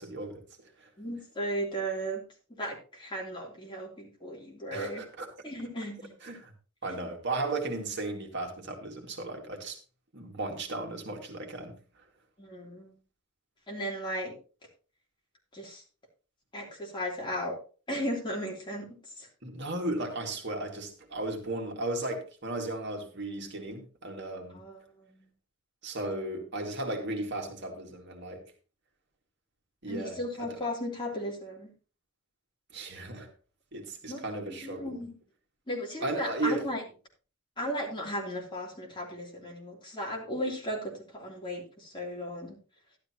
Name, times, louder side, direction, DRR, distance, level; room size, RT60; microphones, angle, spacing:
voice 1, 0.0-0.9 4.7-5.3 6.2-6.5 6.8-9.8 10.1-11.8 19.4-24.6 25.8-28.4 29.8-30.6 32.7-33.3 33.7-35.0 36.0-36.7, right 2 dB, 55° right, 2.1 m, -35 dB
voice 2, 1.0-2.2 2.6-5.0 5.4-6.1 6.8-7.0 12.4-12.9 13.7-14.3 15.5-15.8 16.5-17.6 17.9-19.3 24.5-25.3 29.9-31.7 34.1-35.1 35.7-36.8 37.6-42.6, equal, 25° left, 3.2 m, -36 dB
12.0 x 12.0 x 2.9 m
head